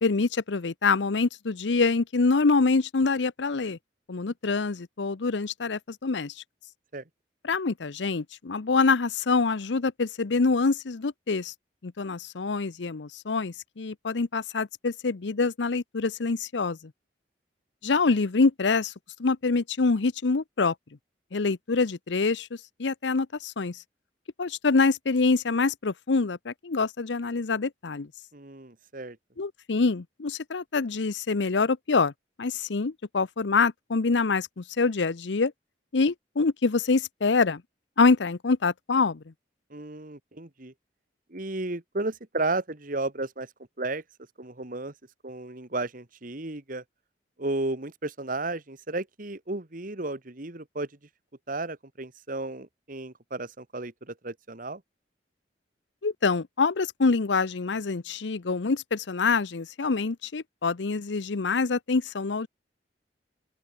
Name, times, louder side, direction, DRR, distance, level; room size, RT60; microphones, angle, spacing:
voice 1, 0.0-3.8 4.1-6.3 7.4-11.5 11.8-16.8 17.8-18.9 19.2-20.7 21.3-22.5 22.8-23.8 24.4-28.1 29.4-32.1 32.4-35.5 35.9-37.6 38.0-39.2 56.0-62.5, left 4 dB, 80° left, 0.7 m, -25 dB
voice 2, 28.3-29.2 39.7-40.7 41.3-43.5 43.8-44.0 44.4-44.9 45.2-46.8 47.4-50.9 51.5-54.8, right 2 dB, 50° right, 1.8 m, -33 dB
open air
head